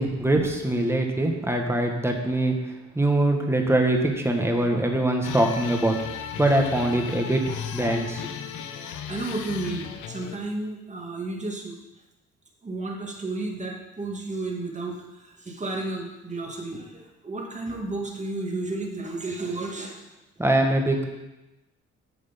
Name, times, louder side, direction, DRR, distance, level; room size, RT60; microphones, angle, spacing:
voice 1, 0.0-6.0 6.4-7.4 7.7-8.3 20.4-21.1, right 1 dB, 10° right, 2 dB, 1.7 m, -23 dB
sound 1, 5.2-10.4, left 8 dB, 85° left, 0.9 m, -35 dB
voice 2, 8.8-11.8 12.6-20.0, right 2 dB, 25° right, 0 dB, 2.3 m, -32 dB
10.0 x 6.7 x 5.4 m, 1.0 s
cardioid pair, 90°, 30 cm